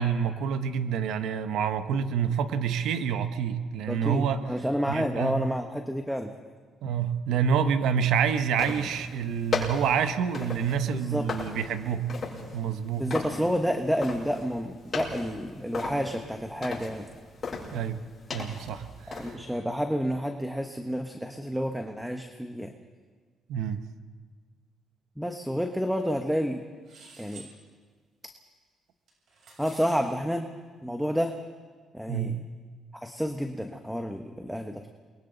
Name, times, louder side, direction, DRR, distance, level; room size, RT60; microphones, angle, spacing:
voice 1, 0.0-4.4 4.9-5.4 6.8-12.1 12.5-13.0 17.7-18.0 18.3-19.2 23.5-23.8 32.1-32.4, right 7 dB, 85° right, 9 dB, 1.1 m, -27 dB
voice 2, 3.9-6.3 10.9-11.3 13.0-17.1 19.1-22.7 25.2-26.6 27.2-27.5 29.6-30.5 30.8-31.4 31.9-32.4 32.9-34.9, equal, ahead, 5 dB, 1.3 m, -30 dB
sound 1, 8.5-19.3, left 4 dB, 40° left, 6.8 m, -37 dB
sound 2, 26.9-27.5 29.1-30.0, right 4 dB, 65° right, 7.9 m, -50 dB
29.0 x 22.5 x 4.0 m, 1.5 s
cardioid pair, 90°, 0 cm